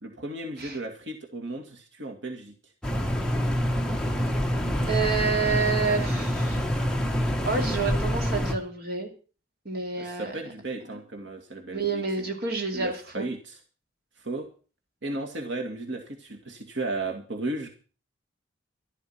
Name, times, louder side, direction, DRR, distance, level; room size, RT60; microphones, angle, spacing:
voice 1, 0.0-2.5 10.0-12.3 12.7-13.6 14.2-14.5 15.0-17.7, right 2 dB, 85° right, 2 dB, 2.3 m, -35 dB
sound 1, 2.8-8.5, equal, 5° left, 1.4 m, -26 dB
voice 2, 4.9-6.6 7.4-9.1 9.6-10.3 11.7-13.3, right 4 dB, 60° right, 3 dB, 2.8 m, -28 dB
13.0 x 12.0 x 5.9 m, 0.38 s
head